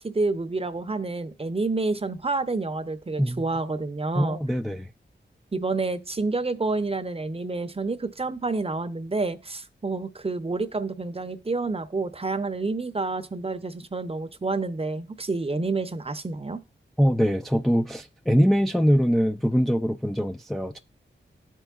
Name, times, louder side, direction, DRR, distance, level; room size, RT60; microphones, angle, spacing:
voice 1, 0.0-4.4 5.5-16.6, right 3 dB, 30° right, 0.7 m, -29 dB
voice 2, 4.1-4.9 17.0-20.8, equal, ahead, 0.4 m, -23 dB
12.0 x 4.5 x 2.4 m
cardioid pair, 50°, 20 cm